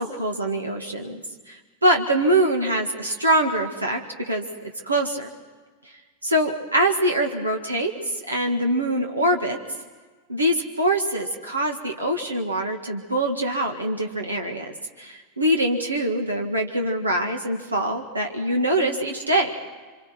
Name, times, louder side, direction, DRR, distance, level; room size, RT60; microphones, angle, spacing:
voice 1, 0.0-5.3 6.2-9.6 10.3-14.7 15.0-19.5, right 1 dB, 80° right, 2 dB, 1.9 m, -24 dB
28.5 x 25.5 x 4.6 m, 1.4 s
figure-of-eight pair, 90°, 0 cm